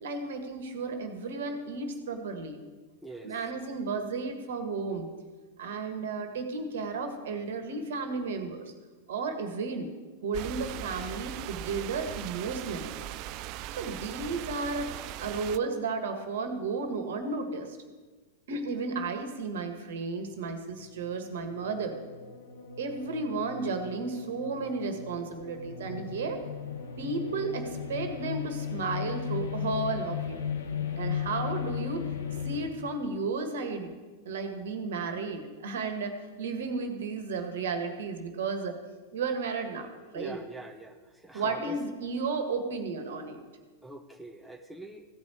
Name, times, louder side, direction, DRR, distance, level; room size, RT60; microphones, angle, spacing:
voice 1, 0.0-2.6 3.2-5.1 5.6-8.6 9.1-9.9 10.2-12.9 13.8-17.8 18.5-22.0 22.8-26.4 27.0-30.4 30.9-32.1 32.4-33.9 34.2-38.8 39.1-39.9 40.1-40.4 41.3-43.4, right 4 dB, 65° right, 7 dB, 1.6 m, -33 dB
voice 2, 3.0-3.3 10.8-10.9 40.1-41.0 41.2-41.8 43.8-45.0, right 1 dB, ahead, 3 dB, 1.0 m, -44 dB
sound 1, 10.3-15.6, right 13 dB, 45° right, 0.4 m, -39 dB
sound 2, 20.8-32.7, left 8 dB, 70° left, 1.2 m, -36 dB
15.0 x 5.4 x 9.1 m, 1.4 s
figure-of-eight pair, 95°, 0 cm